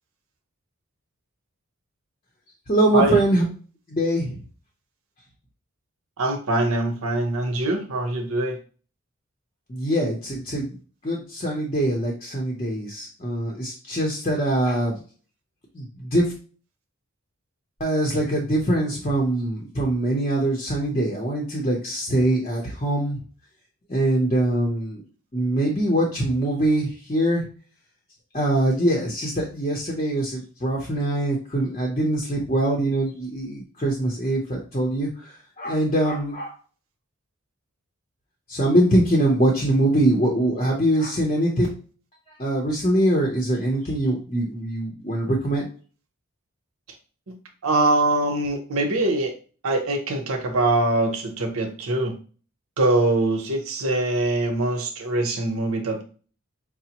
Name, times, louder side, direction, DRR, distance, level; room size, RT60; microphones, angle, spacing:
voice 1, 2.7-3.4 3.9-4.4 9.7-10.7 11.0-15.0 15.7-16.3 17.8-23.2 23.9-25.0 25.3-27.4 28.3-35.1 35.6-36.5 38.5-41.7 42.4-45.7, right 1 dB, 30° left, -2 dB, 0.6 m, -23 dB
voice 2, 6.2-8.6 47.6-49.3 49.6-52.1 52.8-56.0, right 2 dB, 75° right, 4 dB, 0.7 m, -23 dB
4.9 x 2.0 x 2.9 m, 0.39 s
head